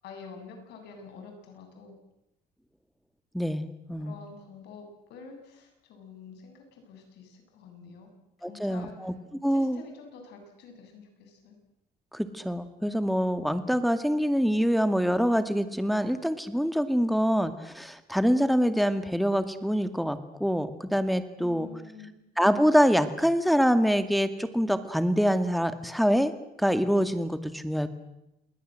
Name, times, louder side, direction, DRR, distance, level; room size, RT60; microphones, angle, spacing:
voice 1, 0.0-1.9 4.0-8.1 8.4-9.2 9.5-11.6 21.4-22.2, left 5 dB, 80° left, 5 dB, 7.7 m, -47 dB
voice 2, 3.3-4.2 8.4-9.1 9.4-9.8 12.1-21.7 22.4-26.3 26.6-27.9, equal, ahead, 10 dB, 2.2 m, -25 dB
28.0 x 20.0 x 7.8 m, 0.89 s
cardioid pair, 110°, 17 cm